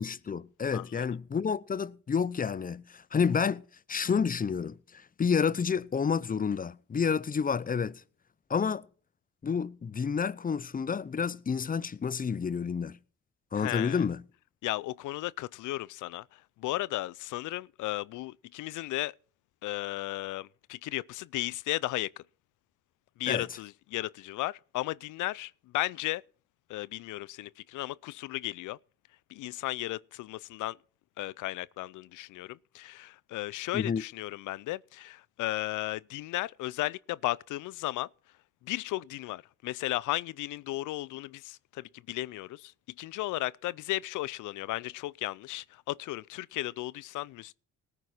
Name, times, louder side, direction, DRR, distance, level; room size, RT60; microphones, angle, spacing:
voice 1, 0.0-3.6 3.9-8.0 8.5-8.9 9.4-13.0 13.5-14.2 23.3-23.4 33.7-34.0, left 6 dB, 30° left, 0.7 m, -29 dB
voice 2, 0.7-1.1 13.5-14.0 14.6-19.1 19.6-22.2 23.2-26.2 26.7-28.8 29.3-30.8 31.2-38.1 38.6-42.7 43.0-47.5, left 17 dB, 80° left, 0.5 m, -35 dB
18.5 x 9.6 x 4.3 m
cardioid pair, 90°, 30 cm